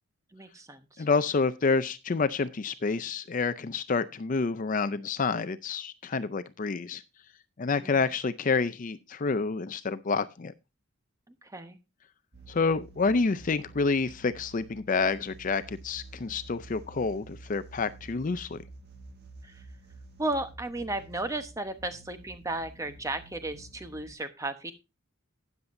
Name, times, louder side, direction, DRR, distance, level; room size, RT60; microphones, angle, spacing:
voice 1, 0.3-1.1 7.8-8.0 11.3-11.8 19.4-19.7 20.2-24.7, right 2 dB, 15° right, 9 dB, 1.0 m, -35 dB
voice 2, 1.0-7.0 7.6-10.5 12.5-18.6, left 4 dB, 40° left, 14 dB, 0.5 m, -28 dB
sound 1, 12.3-24.1, right 2 dB, 50° right, 1.6 m, -50 dB
12.5 x 9.5 x 2.6 m, 0.26 s
head